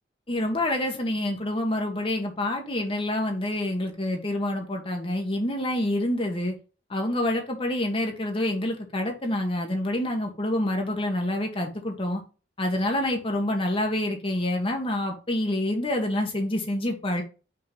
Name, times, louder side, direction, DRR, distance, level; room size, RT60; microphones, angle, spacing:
voice 1, 0.3-6.5 6.9-12.2 12.6-17.2, left 1 dB, 30° left, 2 dB, 1.2 m, -27 dB
5.7 x 3.7 x 5.2 m, 0.33 s
head